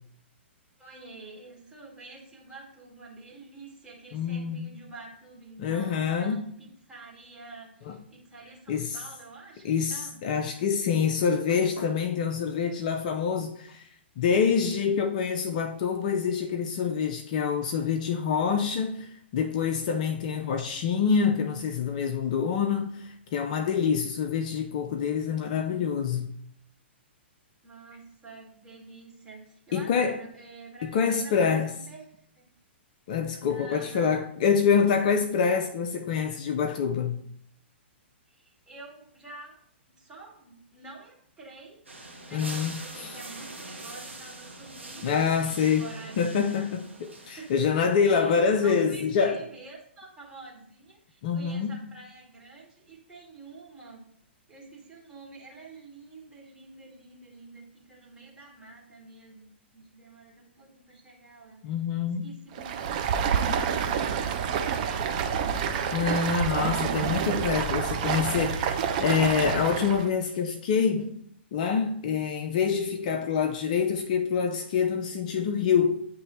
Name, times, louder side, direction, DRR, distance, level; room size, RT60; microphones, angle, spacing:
voice 1, 0.8-10.2 27.6-32.0 32.3-32.4 33.5-34.2 38.3-39.6 40.0-41.8 42.2-46.7 47.3-47.5 48.0-54.0 54.5-61.7 62.2-66.4, right 3 dB, 10° right, 1.5 m, -48 dB
voice 2, 4.1-4.7 5.6-6.4 8.7-9.0 9.6-13.8 14.2-26.3 29.7-30.2 30.8-31.7 33.1-37.2 42.3-43.2 45.0-45.9 46.2-49.4 51.2-51.8 61.6-62.3 65.9-71.2 71.5-76.1, left 6 dB, 40° left, 0.4 m, -26 dB
sound 1, 41.9-48.1, right 2 dB, 80° right, 1.0 m, -43 dB
Stream, 62.5-70.1, right 7 dB, 40° right, 0.5 m, -28 dB
8.6 x 3.0 x 3.8 m
figure-of-eight pair, 115°, 6 cm